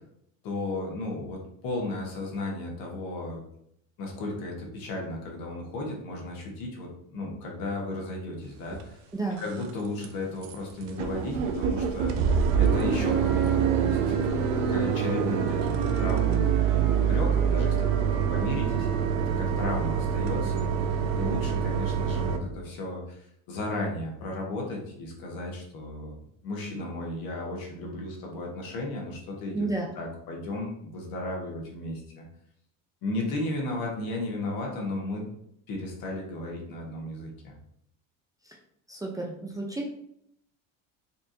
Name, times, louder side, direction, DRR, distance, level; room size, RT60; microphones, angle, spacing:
voice 1, 0.4-3.4 4.0-9.0 9.4-12.3 12.6-14.4 14.7-18.9 19.3-20.6 21.1-26.2 26.4-29.7 29.9-32.2 33.0-35.3 35.7-37.6, left 2 dB, 60° left, -1 dB, 1.3 m, -34 dB
sound 1, 8.7-8.8 9.3-9.7 10.0-10.1 10.4-10.6 10.8-22.4, right 7 dB, 85° right, 0.6 m, -25 dB
voice 2, 29.5-29.9 38.9-39.9, right 2 dB, 10° right, -1 dB, 0.5 m, -31 dB
4.3 x 2.4 x 2.7 m, 0.72 s
supercardioid pair, 100°, 39 cm